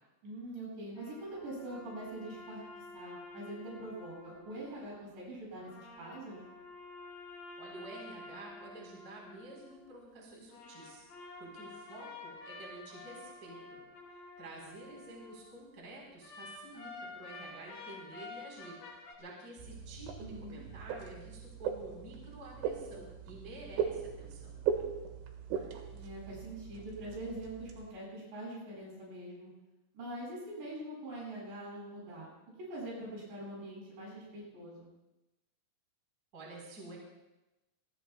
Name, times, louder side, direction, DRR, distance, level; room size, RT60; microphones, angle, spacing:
voice 1, 0.2-6.4 20.2-20.6 25.9-29.5 29.9-32.3 32.7-34.9, right 1 dB, 60° right, -5 dB, 10.0 m, -44 dB
sound 1, 0.9-5.0 5.5-10.0 10.5-15.6 16.2-19.1, left 3 dB, 45° left, 4.3 m, -50 dB
voice 2, 7.5-11.0 11.4-13.8 14.1-24.5 36.3-37.0, right 2 dB, 20° right, -2 dB, 4.6 m, -50 dB
sound 2, 19.6-27.9, right 7 dB, 80° right, 4.2 m, -39 dB
27.5 x 20.5 x 2.4 m, 0.99 s
omnidirectional pair, 5.7 m